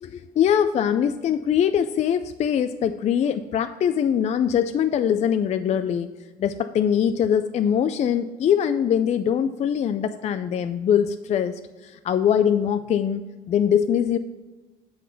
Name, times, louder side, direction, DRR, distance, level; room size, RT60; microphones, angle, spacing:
voice 1, 0.0-6.1 6.4-14.2, left 8 dB, 40° left, 10 dB, 0.4 m, -22 dB
9.2 x 3.9 x 6.8 m, 1.2 s
cardioid pair, 110°, 17 cm